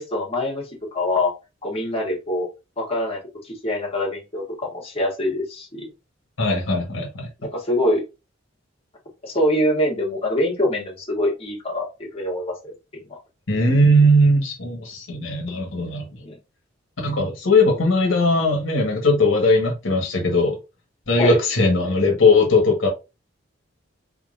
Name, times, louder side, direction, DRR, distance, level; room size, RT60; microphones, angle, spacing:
voice 1, 0.0-1.3 1.6-2.5 2.8-5.9 7.5-8.0 9.2-13.0 16.2-16.4 21.2-21.4, left 1 dB, 30° left, 1.7 m, -24 dB
voice 2, 6.4-7.3 13.5-16.1 17.0-20.6 21.1-22.9, left 1 dB, 80° left, 1.6 m, -19 dB
4.3 x 3.8 x 2.6 m
head